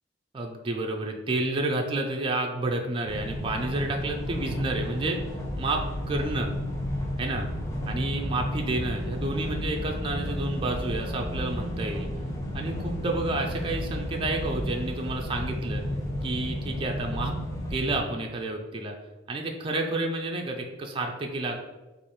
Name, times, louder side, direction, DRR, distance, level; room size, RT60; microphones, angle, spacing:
voice 1, 0.3-5.2 5.6-6.5 7.2-7.5 7.9-12.1 12.5-15.8 16.2-17.3 17.7-18.9 19.3-21.6, right 2 dB, 25° right, 1 dB, 0.4 m, -30 dB
sound 1, 3.0-18.0, equal, 15° left, 0.6 m, -32 dB
3.2 x 2.5 x 4.0 m, 1.1 s
head